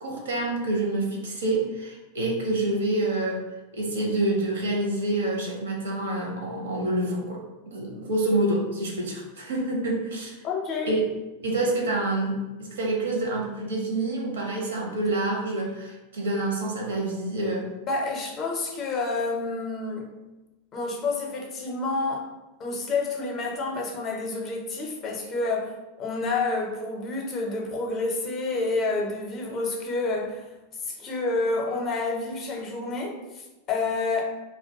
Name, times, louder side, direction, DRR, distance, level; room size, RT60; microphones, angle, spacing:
voice 1, 0.0-3.4 3.7-10.3 10.8-11.0 11.4-17.7, right 2 dB, 65° right, -1 dB, 0.6 m, -27 dB
voice 2, 10.4-10.9 17.8-20.1 20.7-22.3 22.6-25.7 26.0-30.5 30.8-34.2, left 3 dB, 30° left, -1 dB, 0.5 m, -29 dB
2.1 x 2.1 x 2.7 m, 1.1 s
figure-of-eight pair, 90°, 0 cm